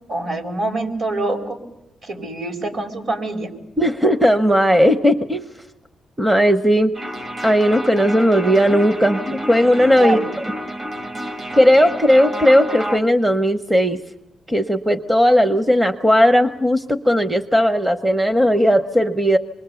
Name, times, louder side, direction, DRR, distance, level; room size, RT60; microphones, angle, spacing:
voice 1, 0.1-1.6 2.0-3.5 10.0-10.3, right 2 dB, 60° right, 1 dB, 4.2 m, -25 dB
voice 2, 3.8-5.5 6.2-6.9 7.4-10.2 11.5-14.0 14.5-19.4, equal, 10° right, 9 dB, 0.7 m, -16 dB
sound 1, 6.9-13.0, equal, 40° right, 1.5 m, -29 dB
26.0 x 21.5 x 6.9 m, 0.92 s
cardioid pair, 130°, 0 cm